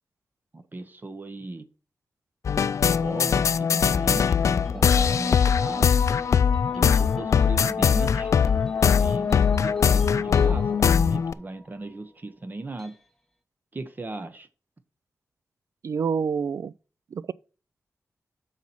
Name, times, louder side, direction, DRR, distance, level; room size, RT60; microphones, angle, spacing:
voice 1, 0.5-1.7 3.0-5.9 6.7-8.3 9.0-13.0 13.7-14.5, right 2 dB, 35° right, 0.8 m, -37 dB
sound 1, 2.4-11.3, left 7 dB, 70° left, 0.3 m, -21 dB
sound 2, 4.2-13.0, left 1 dB, 5° left, 0.9 m, -45 dB
voice 2, 15.8-16.7 17.1-17.3, right 6 dB, 70° right, 0.3 m, -27 dB
7.2 x 4.2 x 5.8 m
wide cardioid pair, 100°, 5 cm